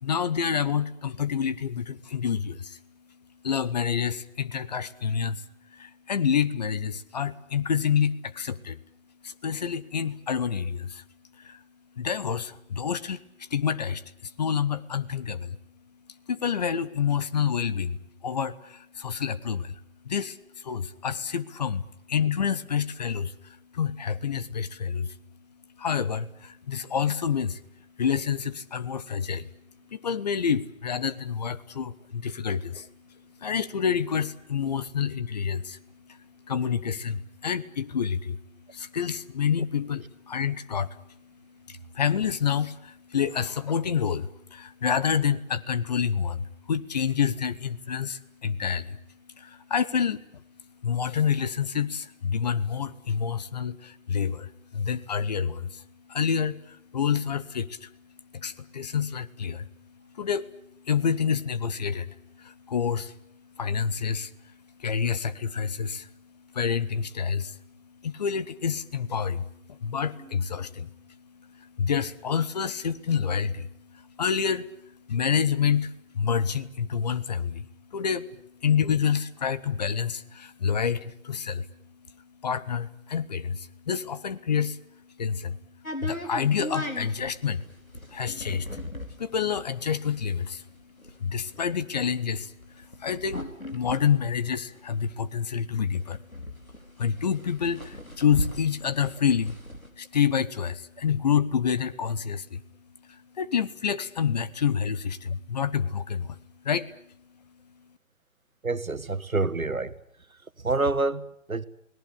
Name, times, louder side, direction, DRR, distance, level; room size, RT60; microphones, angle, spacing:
voice 1, 0.0-2.8 3.4-5.4 5.7-8.8 9.2-11.0 11.4-11.6 12.0-15.6 16.3-21.8 22.1-25.2 25.8-27.6 28.0-29.5 29.9-38.4 38.7-49.0 49.4-50.4 50.8-58.0 58.3-81.7 82.0-87.6 88.1-90.7 91.1-96.2 96.6-99.6 100.0-102.6 103.0-106.4 106.6-106.9, left 7 dB, 30° left, 0.9 m, -28 dB
sound 1, 85.8-95.3 95.7-95.8 95.9-99.9, equal, 90° left, 4.4 m, -37 dB
voice 2, 108.6-110.0 110.3-111.6, right 3 dB, 85° right, 1.5 m, -28 dB
29.0 x 18.5 x 8.5 m
figure-of-eight pair, 140°, 41 cm